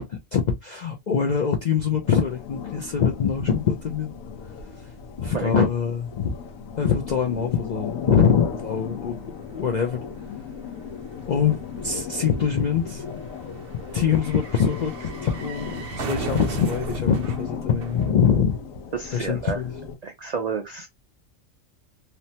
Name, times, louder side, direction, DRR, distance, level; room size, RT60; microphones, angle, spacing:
voice 1, 0.0-4.1 5.2-6.3 6.8-9.2 9.5-10.0 11.3-11.6 11.8-13.0 13.9-18.6 19.1-19.7, left 7 dB, 65° left, 0.4 m, -23 dB
sound 1, 2.0-20.0, left 6 dB, 90° left, 1.0 m, -36 dB
voice 2, 5.3-5.7 18.9-19.6 20.0-20.9, right 5 dB, 75° right, 0.3 m, -30 dB
sound 2, 8.1-8.2 8.3-18.8 19.0-19.1, right 5 dB, 60° right, 0.7 m, -38 dB
3.0 x 2.1 x 2.7 m
omnidirectional pair, 1.4 m